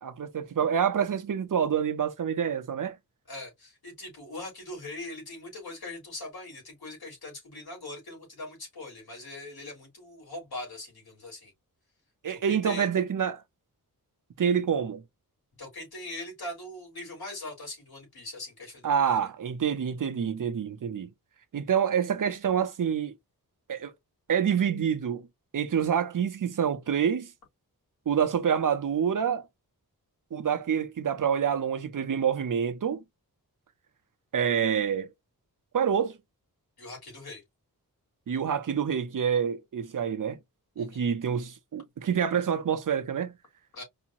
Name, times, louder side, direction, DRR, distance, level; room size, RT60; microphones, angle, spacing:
voice 1, 0.0-3.0 12.2-13.4 14.4-15.0 18.8-21.1 21.5-23.1 23.7-23.9 24.3-25.3 25.5-27.3 28.1-29.4 30.3-33.0 34.3-35.1 35.7-36.1 38.3-40.4 40.8-43.3, right 8 dB, 55° right, 0.7 m, -27 dB
voice 2, 3.3-11.5 12.3-12.9 15.6-19.3 36.8-37.4 40.8-41.1 43.7-43.8, left 2 dB, 80° left, 3.4 m, -41 dB
4.9 x 2.9 x 2.5 m
wide cardioid pair, 135°, 37 cm